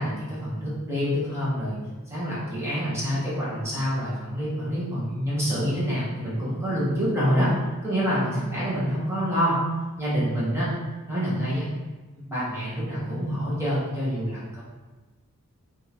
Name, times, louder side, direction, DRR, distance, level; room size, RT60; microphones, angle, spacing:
voice 1, 0.0-1.8 2.1-7.5 7.8-9.6 10.0-10.7 11.1-11.7 12.1-14.6, equal, 10° right, -9 dB, 1.0 m, -27 dB
4.9 x 2.5 x 2.9 m, 1.2 s
head